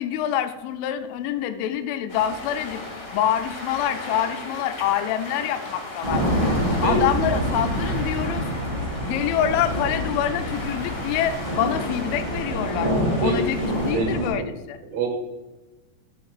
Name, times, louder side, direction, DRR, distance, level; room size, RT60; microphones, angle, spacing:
voice 1, 0.0-2.8 3.1-6.2 6.8-8.4 9.0-12.9 13.2-14.8, left 10 dB, 85° left, 8 dB, 3.0 m, -26 dB
sound 1, 2.1-13.9, left 2 dB, 45° left, 1.4 m, -36 dB
sound 2, 6.0-14.3, equal, 20° right, 1.5 m, -26 dB
voice 2, 13.9-14.4 14.9-15.1, right 5 dB, 80° right, 0 dB, 3.9 m, -26 dB
10.5 x 9.1 x 2.4 m, 1.1 s
omnidirectional pair, 5.4 m